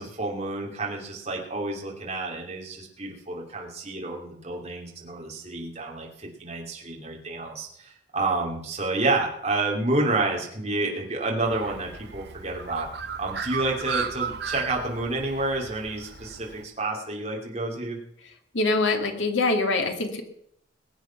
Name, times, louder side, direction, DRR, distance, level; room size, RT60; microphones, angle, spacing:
voice 1, 0.0-12.9 13.2-18.0, right 2 dB, 35° right, -1 dB, 2.8 m, -29 dB
Bird, 11.4-16.6, right 5 dB, 55° right, 1.1 m, -35 dB
voice 2, 18.5-20.2, left 3 dB, 75° left, 5 dB, 2.3 m, -24 dB
21.0 x 8.3 x 5.9 m, 0.70 s
head